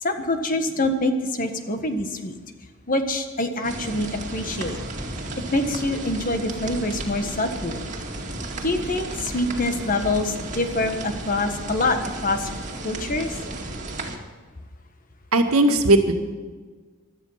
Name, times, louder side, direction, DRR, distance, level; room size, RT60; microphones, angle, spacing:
voice 1, 0.0-2.4 2.9-4.8 5.5-7.9 8.6-12.5 12.8-13.4, left 2 dB, 40° left, 7 dB, 1.5 m, -25 dB
sound 1, 3.6-14.2, right 2 dB, 35° right, 2.1 m, -33 dB
voice 2, 15.3-16.1, right 2 dB, 90° right, 5 dB, 1.8 m, -17 dB
16.5 x 12.5 x 5.8 m, 1.4 s
head